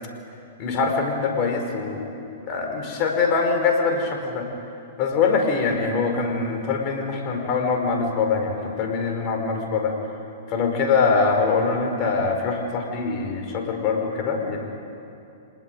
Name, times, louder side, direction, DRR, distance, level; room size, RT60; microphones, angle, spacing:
voice 1, 0.6-2.1 2.5-4.4 5.0-9.9 10.5-14.6, left 4 dB, 40° left, 4 dB, 4.9 m, -23 dB
26.0 x 19.5 x 9.2 m, 2.6 s
hypercardioid pair, 115°, 0 cm